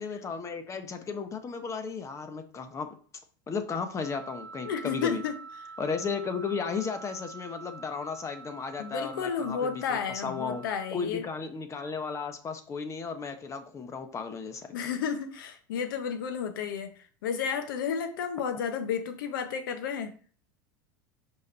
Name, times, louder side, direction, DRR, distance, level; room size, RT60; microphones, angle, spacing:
voice 1, 0.0-2.9 3.5-5.2 5.8-10.6 10.9-14.8, left 5 dB, 25° left, 8 dB, 1.1 m, -34 dB
Wind instrument woodwind instrument, 4.0-10.9, right 4 dB, 50° right, 1.1 m, -46 dB
voice 2, 4.6-5.3 8.8-11.2 14.7-16.9 17.2-20.1, left 7 dB, 80° left, 8 dB, 1.1 m, -32 dB
5.3 x 5.2 x 4.1 m, 0.43 s
hypercardioid pair, 105°, 11 cm